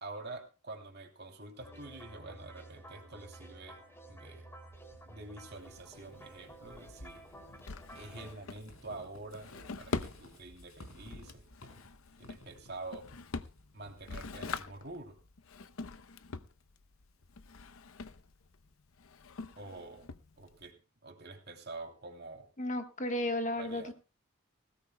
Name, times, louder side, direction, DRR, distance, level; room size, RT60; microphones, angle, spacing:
voice 1, 0.0-3.8 4.1-4.5 5.1-7.2 7.9-9.5 9.8-11.5 12.2-13.1 13.7-15.2 19.6-20.1 20.4-22.5 23.6-23.9, right 2 dB, 50° right, 3 dB, 2.9 m, -47 dB
sound 1, 1.6-8.4, right 1 dB, 10° left, 2.7 m, -52 dB
Walk footsteps / Squeak, 4.7-14.3, left 1 dB, 90° left, 5.3 m, -56 dB
Drawer open or close, 5.5-20.7, left 4 dB, 75° left, 0.7 m, -44 dB
voice 2, 22.6-23.9, left 1 dB, 35° left, 7 dB, 1.3 m, -33 dB
19.5 x 17.0 x 2.2 m, 0.31 s
head